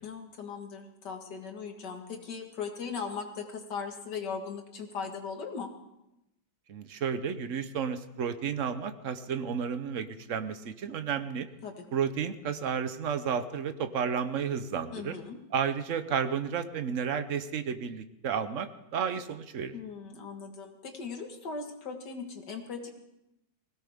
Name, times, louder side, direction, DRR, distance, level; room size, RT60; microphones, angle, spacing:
voice 1, 0.0-5.7 11.6-11.9 14.9-15.4 19.7-22.9, left 5 dB, 65° left, 4 dB, 2.2 m, -39 dB
voice 2, 6.7-11.5 11.9-15.1 15.5-19.7, right 7 dB, 55° right, 10 dB, 0.9 m, -32 dB
20.5 x 17.0 x 3.6 m, 0.87 s
omnidirectional pair, 2.0 m